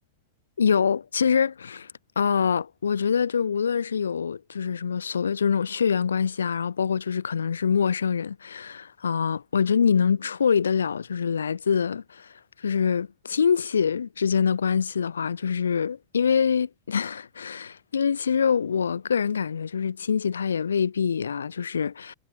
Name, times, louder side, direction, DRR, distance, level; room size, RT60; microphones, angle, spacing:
voice 1, 0.6-1.9 2.2-12.3 12.6-22.1, left 6 dB, 70° left, 0.4 m, -25 dB
figure-of-eight pair, 90°, 0 cm